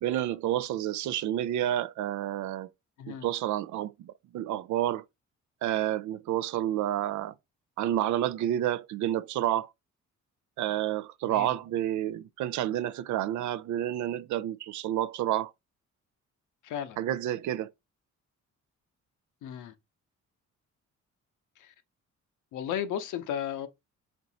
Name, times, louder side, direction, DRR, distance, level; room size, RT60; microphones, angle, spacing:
voice 1, 0.0-2.7 3.1-5.0 5.6-7.3 7.8-9.7 10.6-15.5 17.0-17.7, right 12 dB, 75° right, 0.5 m, -29 dB
voice 2, 3.0-3.3 11.2-11.6 16.6-17.0 19.4-19.7 21.6-21.7 22.5-23.7, left 9 dB, 80° left, 0.8 m, -35 dB
4.5 x 2.6 x 4.1 m
cardioid pair, 90°, 30 cm